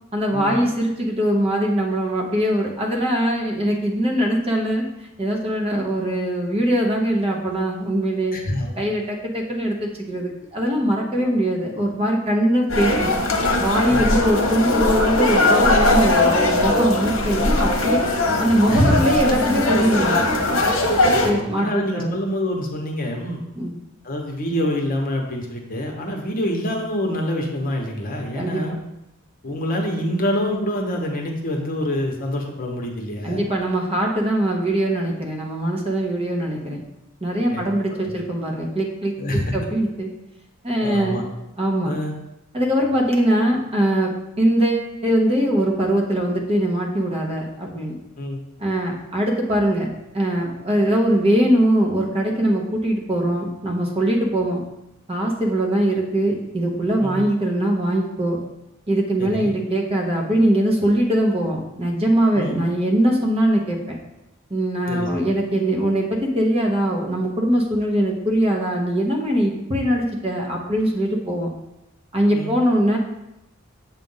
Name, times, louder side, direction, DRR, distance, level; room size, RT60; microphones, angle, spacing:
voice 1, 0.1-4.8 5.2-8.4 8.8-13.1 13.6-18.0 18.4-20.2 21.2-22.1 23.5-23.7 28.3-28.6 33.2-36.8 37.2-39.1 39.5-40.1 40.6-41.2 41.6-41.9 42.5-47.9 48.6-54.6 55.1-58.4 58.9-64.0 64.5-71.5 72.1-73.0, right 1 dB, 30° right, -1 dB, 0.9 m, -21 dB
voice 2, 8.3-8.8 11.2-11.3 13.9-14.1 18.7-19.0 21.1-23.4 24.0-28.7 29.4-33.4 37.5-37.7 38.1-38.2 39.2-39.5 40.8-41.2 41.8-42.1 48.2-48.4 57.0-57.2 59.2-59.5 62.3-62.6 64.9-65.1 72.3-72.5, left 1 dB, 45° left, 1 dB, 0.9 m, -26 dB
sound 1, 12.7-21.3, left 2 dB, 70° left, 0.9 m, -19 dB
7.4 x 2.5 x 5.5 m, 0.89 s
head